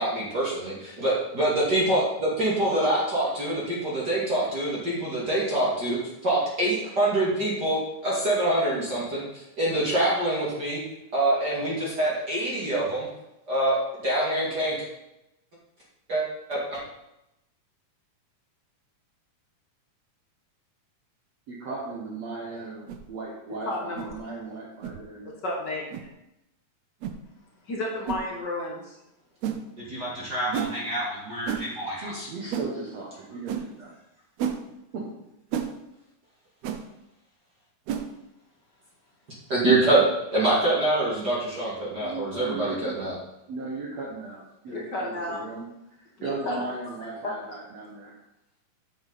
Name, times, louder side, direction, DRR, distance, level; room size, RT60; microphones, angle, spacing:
voice 1, 0.0-0.5 1.0-6.0 6.2-9.2 9.6-10.8 11.1-13.1 13.5-13.8 14.0-14.8 16.1-16.2 16.5-16.8 29.8-32.3 39.5-40.1 40.3-43.1, right 1 dB, 35° right, -7 dB, 2.2 m, -25 dB
voice 2, 21.5-25.3 32.0-33.9 34.9-35.1 42.0-43.0 43.5-45.7 46.2-48.2, right 3 dB, 60° right, -2 dB, 2.0 m, -36 dB
sound 1, 22.9-23.1 24.0-24.1 24.8-25.0 25.9-26.1 27.0-27.2 28.1-28.2 29.4-29.6 30.5-30.7 31.5-31.7 32.5-32.7 33.5-33.6 34.4-34.6 35.5-35.7 36.6-36.8 37.9-38.1, right 8 dB, 75° right, 1.6 m, -30 dB
voice 3, 23.6-24.3 25.4-26.1 27.7-29.0 44.7-45.4 46.2-46.7 47.2-47.3, left 1 dB, 55° left, -2 dB, 1.2 m, -32 dB
8.7 x 7.9 x 4.1 m, 0.89 s
omnidirectional pair, 3.9 m